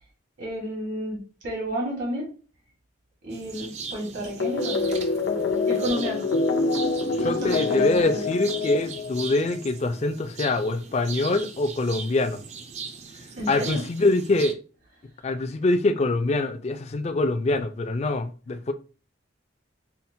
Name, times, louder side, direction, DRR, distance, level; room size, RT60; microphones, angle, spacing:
voice 1, 0.4-2.3 3.2-4.9 5.6-6.3 7.1-8.4 13.4-13.8, equal, 75° right, 1.4 m, -32 dB
sound 1, 3.3-14.5, right 5 dB, 35° right, 0.4 m, -39 dB
sound 2, 4.4-9.5, left 3 dB, 80° left, 0.6 m, -26 dB
voice 2, 7.1-12.4 13.5-14.6 15.2-18.7, left 2 dB, 35° left, 0.3 m, -24 dB
5.6 x 2.1 x 2.6 m
head